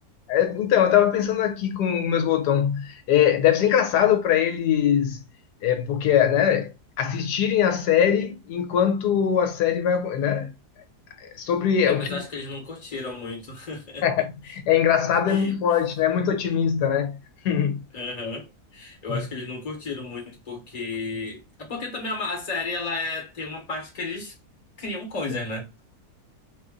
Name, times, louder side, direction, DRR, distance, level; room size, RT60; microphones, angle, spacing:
voice 1, 0.3-5.2 5.6-10.5 11.2-12.2 14.0-17.2 17.4-17.8 19.1-19.2, left 9 dB, 80° left, 1.1 m, -22 dB
voice 2, 11.8-14.0 15.3-15.6 17.9-24.3 24.8-25.7, left 3 dB, 30° left, 1.1 m, -33 dB
2.8 x 2.4 x 3.5 m
omnidirectional pair, 1.7 m